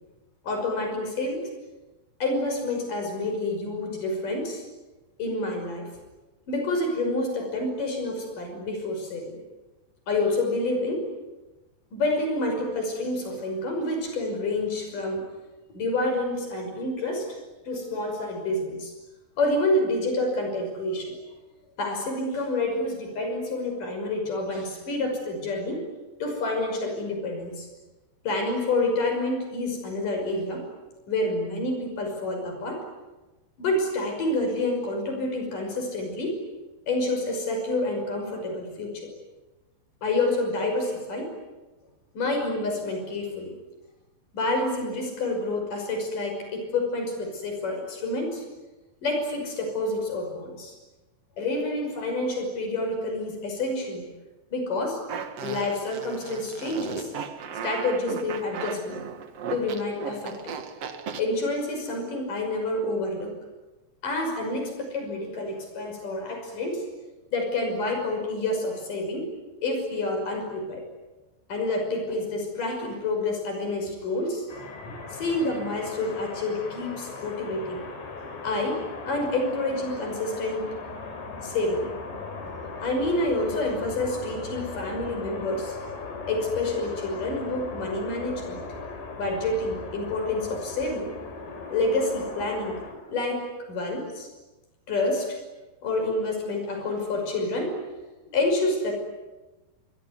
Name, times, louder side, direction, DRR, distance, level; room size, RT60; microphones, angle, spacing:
voice 1, 0.4-1.5 2.2-4.6 5.2-5.9 6.5-9.4 10.1-11.1 11.9-15.3 15.7-17.4 17.7-18.9 19.4-21.2 21.8-25.8 26.2-27.7 28.2-30.7 31.1-32.9 33.6-36.4 36.9-39.1 40.0-41.3 42.1-43.5 44.3-48.4 49.0-50.7 51.4-54.1 54.5-55.0 55.4-57.1 57.6-59.1 59.5-60.6 61.2-63.4 64.0-66.9 67.3-69.3 69.6-70.8 71.5-74.5 74.8-77.8 78.4-80.8 81.4-81.9 82.6-85.8 86.3-88.7 89.2-91.2 91.7-92.8 93.1-94.3 94.9-95.4 95.8-97.8 98.3-98.9, left 2 dB, 50° left, 4 dB, 7.2 m, -28 dB
Fart, 55.1-61.2, right 6 dB, 50° right, 2.1 m, -36 dB
sound 1, 74.5-92.9, left 4 dB, 75° left, 6.4 m, -38 dB
26.0 x 23.5 x 9.6 m, 1.1 s
omnidirectional pair, 4.8 m